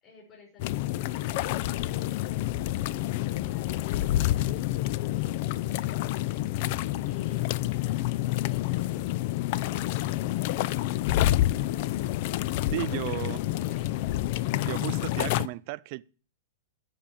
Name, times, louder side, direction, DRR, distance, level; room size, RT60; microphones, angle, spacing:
voice 1, 0.0-1.2 1.5-10.9 12.5-14.1, left 4 dB, 30° left, 5.2 m, -55 dB
sound 1, 0.6-15.5, left 15 dB, 50° left, 0.4 m, -28 dB
voice 2, 12.7-13.4 14.6-16.0, right 21 dB, 50° right, 0.4 m, -34 dB
8.9 x 5.1 x 7.3 m
hypercardioid pair, 125°, 0 cm